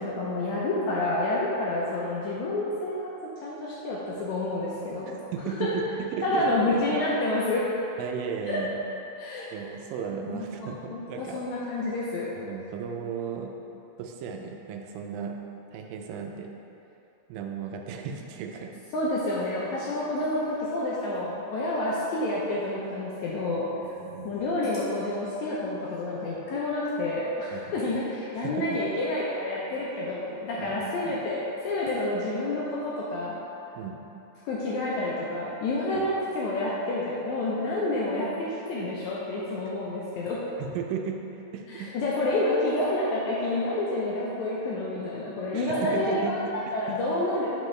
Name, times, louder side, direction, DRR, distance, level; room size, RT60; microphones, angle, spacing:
voice 1, 0.0-3.1 3.4-5.2 5.4-5.7 6.2-7.6 8.4-8.6 9.2-9.5 10.2-12.3 18.9-23.7 24.2-33.4 34.4-40.4 41.7-46.4 46.7-47.5, left 2 dB, 75° left, -6 dB, 1.7 m, -29 dB
voice 2, 5.3-5.8 6.1-6.5 8.0-8.7 9.5-11.4 12.4-13.5 14.0-15.4 15.7-16.5 17.3-18.8 24.0-24.4 27.5-27.8 28.4-28.8 30.6-31.2 33.8-34.0 35.9-36.1 40.6-41.9 45.5-47.0, right 6 dB, 90° right, 3 dB, 2.3 m, -35 dB
6.5 x 5.6 x 3.1 m, 3.0 s
omnidirectional pair, 3.9 m